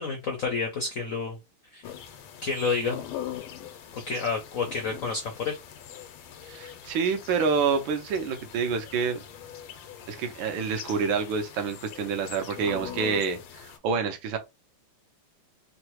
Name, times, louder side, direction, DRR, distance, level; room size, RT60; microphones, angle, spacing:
voice 1, 0.0-1.4 1.7-1.8 2.4-3.0 3.9-5.6, left 4 dB, 70° left, 0.7 m, -29 dB
sound 1, 1.8-13.8, left 9 dB, 90° left, 1.4 m, -42 dB
voice 2, 6.4-9.2 10.1-14.4, right 5 dB, 75° right, 1.4 m, -28 dB
3.7 x 2.1 x 2.9 m
omnidirectional pair, 2.2 m